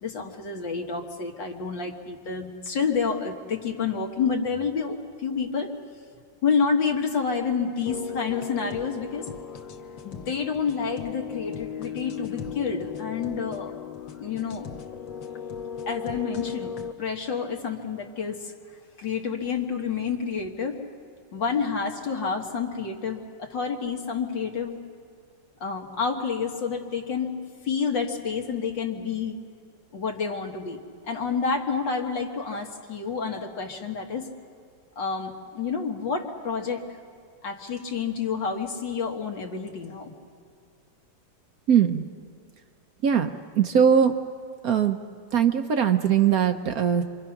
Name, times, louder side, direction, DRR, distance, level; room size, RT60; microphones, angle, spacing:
voice 1, 0.0-5.7 6.4-9.3 10.0-13.7 14.2-14.7 15.9-18.5 19.0-20.8 21.3-24.8 25.6-27.4 27.6-29.4 29.9-34.3 35.0-37.0 37.4-40.1, left 5 dB, 70° left, 3 dB, 2.4 m, -29 dB
sound 1, 7.9-16.9, left 7 dB, 85° left, 1.8 m, -37 dB
voice 2, 41.7-42.0 43.0-43.3 43.6-44.1 44.6-45.0 45.3-47.0, right 8 dB, 60° right, 7 dB, 1.1 m, -20 dB
27.5 x 24.5 x 5.9 m, 2.2 s
omnidirectional pair, 2.0 m